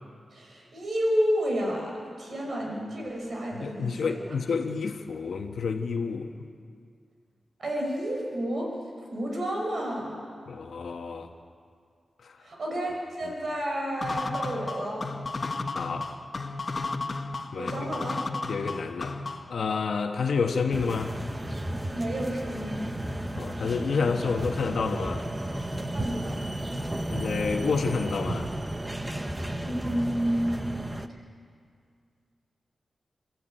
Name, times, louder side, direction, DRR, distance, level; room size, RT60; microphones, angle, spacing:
voice 1, 0.3-4.4 7.6-8.7 9.1-10.2 12.4-15.0 17.6-18.2 21.9-22.8 25.9-26.4 29.6-30.7 31.1-31.2, equal, 60° right, -1 dB, 5.9 m, -30 dB
voice 2, 3.6-6.3 10.5-11.3 15.7-16.1 17.5-17.9 18.5-19.2 19.5-21.1 23.4-25.2 27.1-28.5, left 5 dB, 80° left, 4 dB, 1.4 m, -29 dB
sound 1, 14.0-19.6, left 3 dB, 40° left, 1.3 m, -33 dB
sound 2, 20.7-31.1, right 1 dB, 15° right, 1.0 m, -33 dB
29.5 x 13.0 x 9.1 m, 2.2 s
wide cardioid pair, 110°, 0 cm